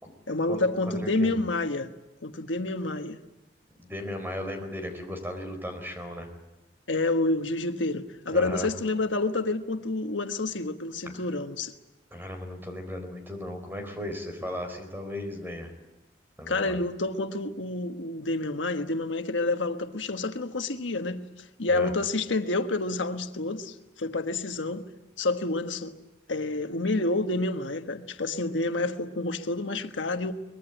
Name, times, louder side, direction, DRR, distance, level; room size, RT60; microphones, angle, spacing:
voice 1, 0.3-1.9 2.2-3.2 6.9-11.7 16.5-21.2 21.6-24.9 25.2-25.9 26.3-30.3, left 2 dB, 90° left, 1.4 m, -28 dB
voice 2, 0.8-1.4 3.8-6.3 8.3-8.7 11.0-11.1 12.1-15.7 16.4-16.8 21.7-21.9, left 1 dB, 10° right, 4.5 m, -36 dB
24.0 x 21.0 x 9.1 m
head